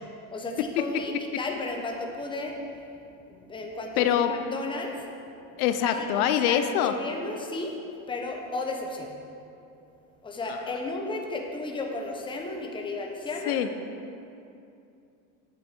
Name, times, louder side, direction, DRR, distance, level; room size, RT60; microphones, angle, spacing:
voice 1, 0.3-5.1 5.8-6.1 6.5-7.7 8.1-9.2 10.2-13.6, left 2 dB, 10° left, 1 dB, 0.8 m, -34 dB
voice 2, 4.0-4.3 5.6-6.9 13.5-13.7, left 10 dB, 85° left, 9 dB, 0.7 m, -24 dB
8.8 x 8.0 x 4.4 m, 2.6 s
supercardioid pair, 135°, 44 cm